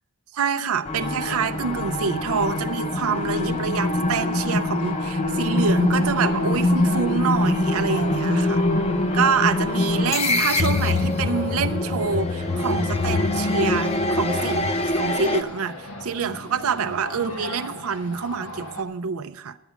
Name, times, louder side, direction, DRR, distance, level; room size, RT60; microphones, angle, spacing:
voice 1, 0.3-8.6 9.1-19.6, right 6 dB, 80° right, 9 dB, 0.5 m, -26 dB
sound 1, 0.8-15.4, left 2 dB, 30° left, 0.6 m, -24 dB
sound 2, 1.0-18.8, left 2 dB, 85° left, 1.4 m, -39 dB
11.5 x 8.3 x 6.9 m, 0.93 s
head